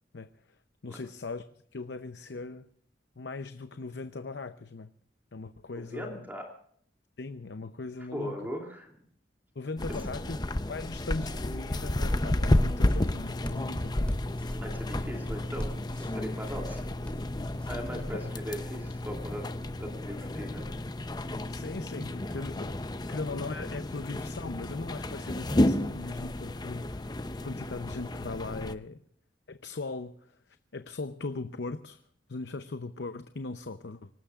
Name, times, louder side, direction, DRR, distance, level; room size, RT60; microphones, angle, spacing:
voice 1, 0.8-1.4 1.7-2.7 3.2-4.9 5.3-6.3 7.2-8.4 9.6-10.4 10.7-14.1 18.1-18.3 21.5-22.8 23.1-29.0 29.5-30.4 30.7-32.0 32.3-34.1, left 3 dB, 75° left, 10 dB, 0.7 m, -39 dB
voice 2, 5.7-6.4 8.0-9.0 9.9-10.0 10.2-10.3 14.6-15.7 16.1-17.2 17.7-19.5 19.8-20.7 23.1-23.2, equal, 10° right, 1 dB, 2.9 m, -39 dB
sound 1, 9.8-28.7, left 1 dB, 25° left, 0.7 m, -32 dB
sound 2, 11.1-17.7, equal, 5° left, 3.0 m, -40 dB
26.0 x 18.5 x 2.4 m, 0.62 s
head